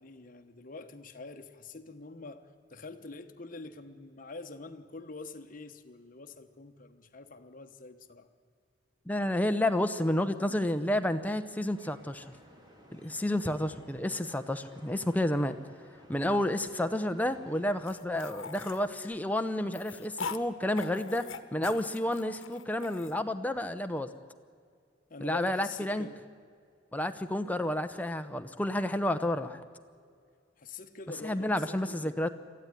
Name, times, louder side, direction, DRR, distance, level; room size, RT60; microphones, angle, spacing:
voice 1, 0.0-8.3 25.1-26.2 30.6-32.2, left 3 dB, 45° left, 6 dB, 1.2 m, -45 dB
voice 2, 9.1-12.3 12.9-15.6 16.1-24.1 25.2-26.1 26.9-29.6 31.2-32.3, left 1 dB, 10° left, 8 dB, 0.8 m, -30 dB
sound 1, 11.7-17.9, equal, 20° right, 2.7 m, -56 dB
sound 2, 17.9-20.4 20.8-23.1, left 5 dB, 90° left, 1.0 m, -42 dB
22.5 x 14.0 x 9.9 m, 2.1 s
head